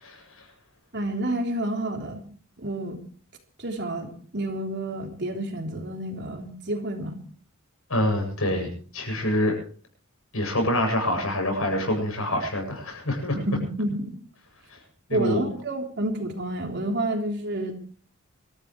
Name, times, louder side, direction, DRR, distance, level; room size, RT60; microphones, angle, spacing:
voice 1, 0.9-2.2 2.6-3.0 3.6-7.2 13.3-14.1 15.1-17.7, right 1 dB, 55° right, 2 dB, 3.7 m, -29 dB
voice 2, 7.9-9.5 10.3-13.4 15.1-15.4, left 1 dB, 80° left, 3 dB, 7.6 m, -26 dB
25.5 x 14.0 x 3.2 m, 0.42 s
head